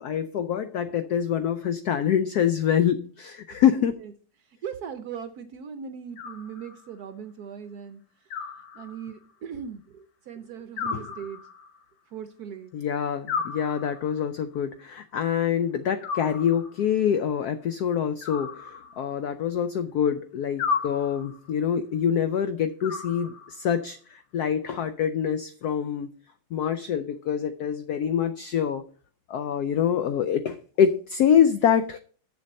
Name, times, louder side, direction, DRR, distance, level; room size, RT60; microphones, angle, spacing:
voice 1, 0.0-3.9 10.9-11.0 12.7-26.1 26.5-28.9 29.3-32.0, left 8 dB, 80° left, 10 dB, 0.8 m, -25 dB
voice 2, 3.5-3.9 4.6-8.0 8.7-11.4 12.1-12.7 16.4-16.5, right 7 dB, 70° right, 9 dB, 0.9 m, -39 dB
Animal, 6.2-7.0 8.3-9.3 10.8-11.8 13.3-14.3 16.0-16.9 18.2-19.3 20.6-21.5 22.8-23.7, left 5 dB, 60° left, 1.5 m, -34 dB
7.6 x 7.0 x 5.3 m, 0.43 s
omnidirectional pair, 2.2 m